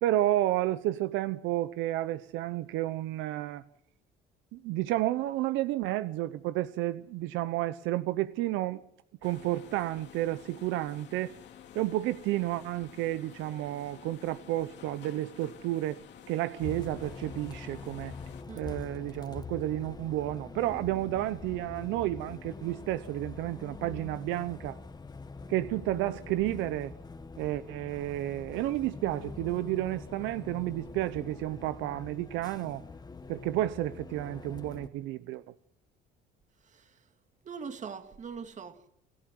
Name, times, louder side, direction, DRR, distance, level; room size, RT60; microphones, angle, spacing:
voice 1, 0.0-3.6 4.5-8.8 9.2-11.3 11.7-18.1 18.6-24.8 25.5-26.9 27.4-32.8 33.3-35.4, right 15 dB, 85° right, 0.8 m, -31 dB
sound 1, 9.2-18.4, left 9 dB, 65° left, 3.0 m, -51 dB
Bus, 16.6-34.9, left 4 dB, 20° left, 1.7 m, -44 dB
voice 2, 18.5-18.8 36.7-36.8 37.4-38.9, right 6 dB, 40° right, 2.3 m, -42 dB
29.0 x 14.0 x 7.8 m
cardioid pair, 115°, 19 cm